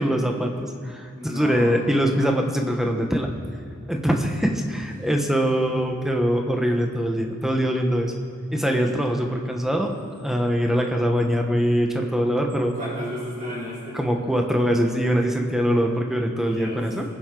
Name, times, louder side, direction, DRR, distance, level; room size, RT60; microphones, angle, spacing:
voice 1, 0.0-3.3 3.9-8.1 8.5-9.9 10.2-12.8 13.9-17.0, equal, ahead, 2 dB, 1.1 m, -23 dB
voice 2, 1.1-1.7 12.7-14.0 16.4-16.8, equal, 40° right, -8 dB, 3.2 m, -33 dB
21.5 x 7.8 x 3.9 m, 2.5 s
head